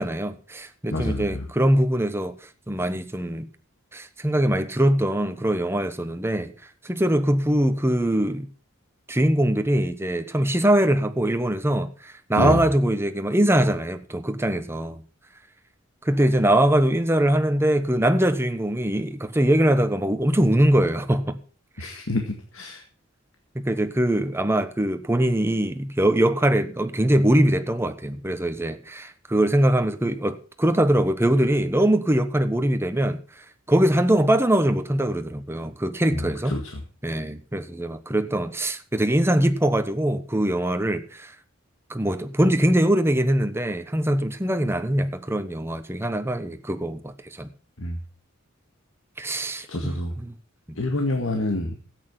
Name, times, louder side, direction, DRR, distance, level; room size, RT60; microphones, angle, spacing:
voice 1, 0.0-2.3 2.7-3.5 3.9-6.5 6.8-8.5 9.1-15.0 16.0-21.4 21.8-21.9 23.5-33.2 33.7-36.5 37.0-41.3 41.9-47.1 47.4-47.5 49.2-49.9 50.2-50.3 50.7-50.8, right 1 dB, 10° right, 1.1 m, -22 dB
voice 2, 0.9-1.5 12.4-12.6 21.8-22.8 36.1-36.8 47.8-48.0 49.7-50.1 50.8-51.7, left 1 dB, 70° left, 2.0 m, -27 dB
13.5 x 9.1 x 6.1 m
head